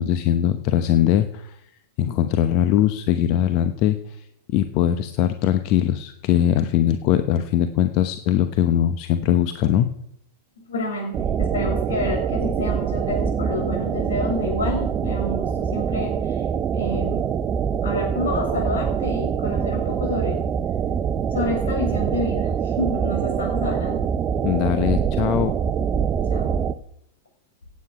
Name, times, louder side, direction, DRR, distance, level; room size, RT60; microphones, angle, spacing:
voice 1, 0.0-1.6 2.0-9.9 24.4-25.5, left 11 dB, 45° left, 10 dB, 0.9 m, -21 dB
voice 2, 10.7-16.4 16.7-17.3 17.8-20.4 21.3-24.1 26.3-26.5, left 2 dB, 75° left, 0 dB, 7.4 m, -29 dB
sound 1, 11.1-26.7, right 7 dB, 30° right, 0.7 m, -24 dB
17.0 x 8.6 x 6.1 m, 0.75 s
figure-of-eight pair, 100°, 0 cm